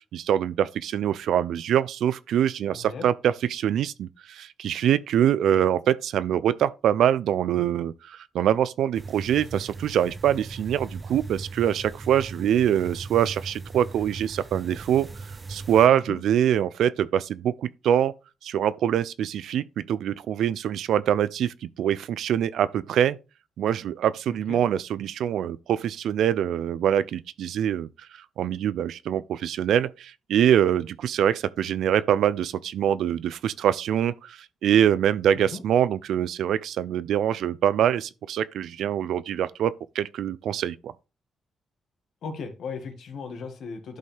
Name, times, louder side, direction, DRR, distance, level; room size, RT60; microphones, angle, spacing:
voice 1, 0.1-15.1 15.5-18.1 18.4-23.2 23.6-27.9 28.4-40.9, right 10 dB, 80° right, 0.5 m, -24 dB
voice 2, 2.7-3.1 15.9-16.2 24.5-24.6 35.3-35.6 42.2-44.0, left 5 dB, 70° left, 1.9 m, -37 dB
sound 1, 8.9-15.9, right 3 dB, 30° right, 0.5 m, -39 dB
11.5 x 5.4 x 3.5 m
cardioid pair, 90°, 0 cm